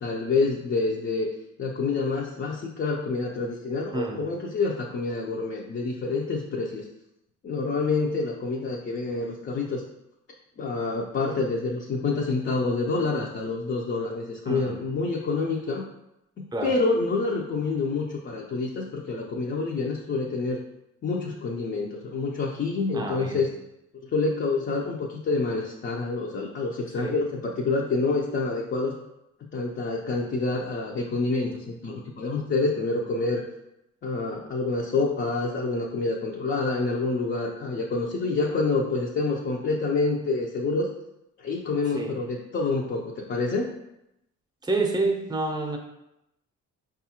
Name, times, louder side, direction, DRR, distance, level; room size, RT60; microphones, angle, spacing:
voice 1, 0.0-1.3 1.6-6.8 7.4-9.8 10.6-15.8 16.4-20.6 21.0-23.5 24.0-29.0 29.4-33.4 34.0-40.9 41.4-43.7, left 3 dB, 40° left, -1 dB, 0.5 m, -27 dB
voice 2, 14.5-14.8 16.5-16.7 22.9-23.4 27.0-27.2 41.9-42.1 44.6-45.8, right 3 dB, 15° right, 2 dB, 0.6 m, -28 dB
4.7 x 2.4 x 2.9 m, 0.84 s
cardioid pair, 90°, 30 cm